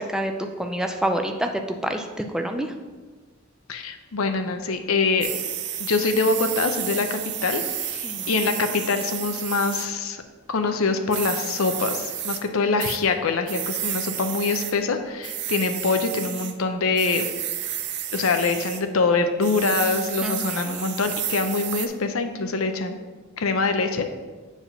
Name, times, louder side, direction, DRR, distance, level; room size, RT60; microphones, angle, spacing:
voice 1, 0.0-2.7 8.0-8.4 20.2-20.9, right 1 dB, 5° right, 4 dB, 0.4 m, -28 dB
voice 2, 3.7-5.3 5.8-10.2 10.5-17.3 18.1-23.0 23.4-24.1, left 4 dB, 90° left, 7 dB, 0.7 m, -24 dB
sound 1, 5.2-9.9 11.1-12.4 12.8-13.0 13.5-14.7 15.2-16.5 17.0-18.8 19.4-21.9, right 10 dB, 55° right, 0.6 m, -31 dB
7.1 x 3.5 x 5.8 m, 1.3 s
head